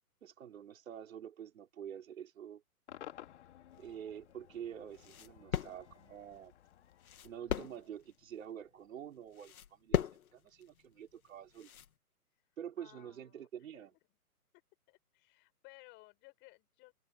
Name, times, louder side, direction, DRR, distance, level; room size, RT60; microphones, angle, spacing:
voice 1, 0.2-2.6 3.8-6.6 7.2-11.7 12.6-13.9, right 9 dB, 55° right, 4.5 m, -47 dB
Cheering / Crowd / Fireworks, 2.9-8.2, left 11 dB, 45° left, 2.8 m, -56 dB
sound 1, 3.7-11.9, left 9 dB, 65° left, 2.5 m, -41 dB
voice 2, 12.8-13.7 14.0-14.2 14.9-16.9, left 24 dB, 25° left, 7.5 m, -59 dB
hypercardioid pair, 155°, 46 cm